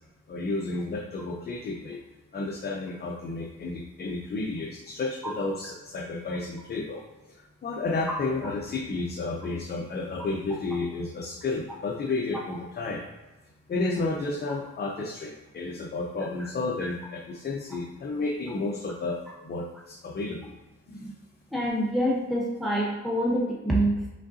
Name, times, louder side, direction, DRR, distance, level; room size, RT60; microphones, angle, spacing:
voice 1, 0.3-2.0 2.3-7.0 7.3-13.0 13.7-20.5 20.9-21.1, left 3 dB, 35° left, 0 dB, 0.6 m, -32 dB
voice 2, 21.5-24.2, right 1 dB, ahead, -4 dB, 0.9 m, -26 dB
5.2 x 3.6 x 2.7 m, 1.1 s
cardioid pair, 90°, 30 cm